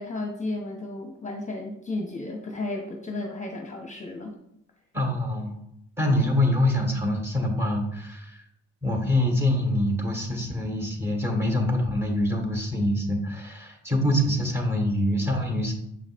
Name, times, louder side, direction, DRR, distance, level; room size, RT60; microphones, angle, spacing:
voice 1, 0.0-4.3, left 2 dB, 25° left, 1 dB, 0.9 m, -33 dB
voice 2, 4.9-5.6 6.0-8.4 8.8-15.7, left 1 dB, 10° right, 2 dB, 1.6 m, -25 dB
7.1 x 5.2 x 2.5 m, 0.77 s
cardioid pair, 90°, 30 cm